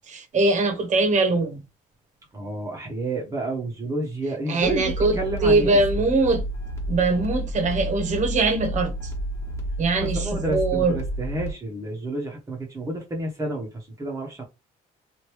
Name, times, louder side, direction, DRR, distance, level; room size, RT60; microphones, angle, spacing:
voice 1, 0.1-1.6 4.5-5.1 5.4-6.4 6.9-8.9 9.8-10.9, right 3 dB, 45° right, 1.0 m, -22 dB
voice 2, 2.3-6.1 10.0-14.4, right 1 dB, 20° right, 0.9 m, -30 dB
sound 1, 4.6-11.5, right 1 dB, 15° left, 1.2 m, -31 dB
3.2 x 2.5 x 3.0 m
cardioid pair, 110°, 17 cm